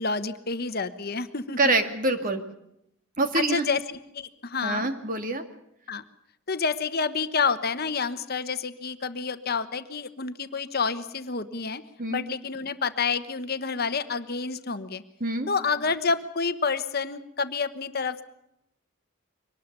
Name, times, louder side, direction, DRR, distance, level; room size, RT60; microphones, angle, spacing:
voice 1, 0.0-1.7 3.3-4.9 5.9-6.0 6.5-11.8 12.1-15.0 15.5-18.2, left 5 dB, 45° left, 10 dB, 1.2 m, -29 dB
voice 2, 1.6-2.4 3.2-3.7 4.6-5.4 12.0-12.2 15.2-15.5, right 2 dB, 40° right, 7 dB, 2.2 m, -25 dB
23.5 x 19.0 x 6.8 m, 0.79 s
head